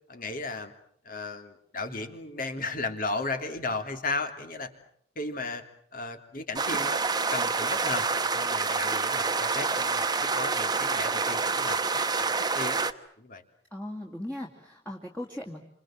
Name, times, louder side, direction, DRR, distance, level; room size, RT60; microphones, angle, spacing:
voice 1, 0.1-0.7 1.0-4.7 5.1-5.6 5.9-7.0 7.3-8.0 8.3-12.8 13.2-13.4, left 3 dB, 45° left, 6 dB, 3.3 m, -35 dB
sound 1, 6.6-12.9, right 4 dB, 20° right, 1.1 m, -27 dB
voice 2, 13.7-15.6, left 1 dB, 10° left, 0 dB, 2.6 m, -38 dB
28.5 x 27.0 x 7.7 m, 0.64 s
head